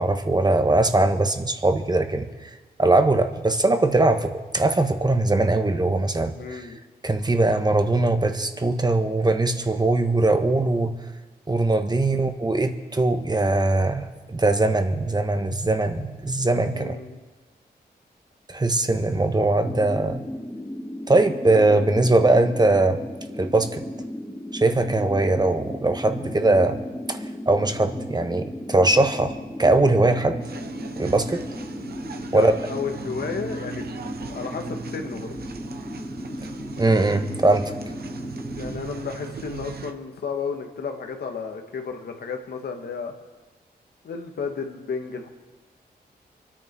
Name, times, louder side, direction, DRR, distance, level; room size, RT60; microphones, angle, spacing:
voice 1, 0.0-2.5 2.8-6.7 7.0-10.9 11.5-17.0 18.5-20.2 21.1-23.0 23.4-23.8 24.5-26.8 27.1-27.2 27.5-29.3 29.6-30.4 31.0-31.4 32.3-32.5 36.8-37.7, right 2 dB, 25° right, 7 dB, 1.4 m, -21 dB
voice 2, 6.3-6.8 12.0-12.3 16.7-17.2 32.3-33.9 34.3-35.3 38.5-43.1 44.0-45.3, left 5 dB, 75° left, 5 dB, 1.7 m, -33 dB
sound 1, 19.6-38.8, left 1 dB, 10° left, 1.6 m, -36 dB
sound 2, 30.4-39.9, right 6 dB, 70° right, 1.0 m, -39 dB
24.5 x 10.0 x 4.7 m, 1.3 s
cardioid pair, 65°, 17 cm